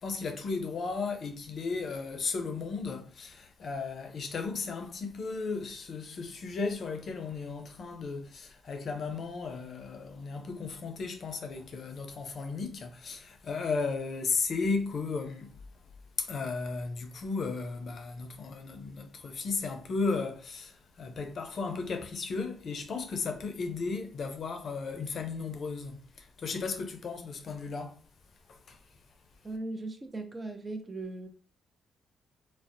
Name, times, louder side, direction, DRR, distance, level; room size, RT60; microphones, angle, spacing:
voice 1, 0.0-15.6 16.2-28.0 28.5-28.8, left 4 dB, 60° left, 0.5 m, -35 dB
voice 2, 29.4-31.3, right 2 dB, 30° right, 0.5 m, -38 dB
2.5 x 2.0 x 2.5 m
supercardioid pair, 60°, 0 cm